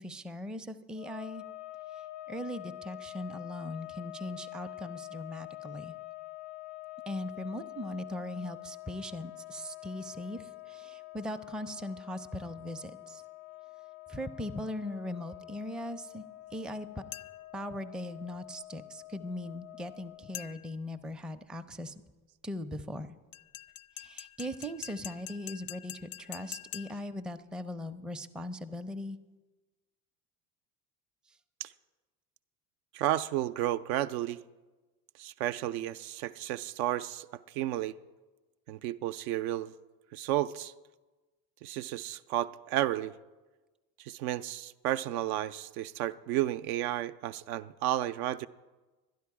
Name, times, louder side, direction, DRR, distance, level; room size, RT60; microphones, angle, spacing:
voice 1, 0.0-1.4 2.3-5.9 7.1-13.2 14.1-16.2 16.5-16.9 17.5-21.9 22.4-23.2 24.0-29.2, left 1 dB, ahead, 7 dB, 0.4 m, -39 dB
sound 1, 0.9-20.6, left 17 dB, 80° left, 0.8 m, -46 dB
sound 2, 17.1-17.6 20.3-20.9 23.3-27.2, left 17 dB, 50° left, 0.4 m, -45 dB
voice 2, 32.9-34.4 35.2-37.9 38.7-39.7 40.1-40.7 41.6-43.1 44.0-48.5, right 13 dB, 70° right, 11 dB, 0.5 m, -32 dB
11.5 x 10.5 x 4.8 m, 1.2 s
hypercardioid pair, 75°, 44 cm